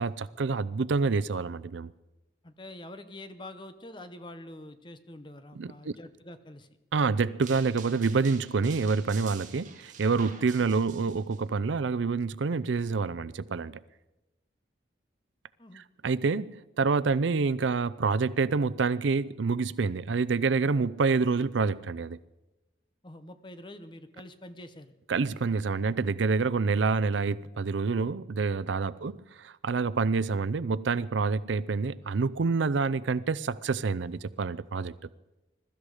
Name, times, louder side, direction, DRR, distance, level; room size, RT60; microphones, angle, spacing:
voice 1, 0.0-1.9 5.6-5.9 6.9-13.8 15.8-22.2 25.1-34.9, right 4 dB, 85° right, 0.5 m, -27 dB
voice 2, 2.4-6.7 15.6-15.8 23.0-24.9 29.0-29.1 30.2-30.3, left 1 dB, 25° left, 0.9 m, -46 dB
sound 1, 7.4-11.4, right 7 dB, 40° right, 2.0 m, -47 dB
22.0 x 13.0 x 4.9 m
head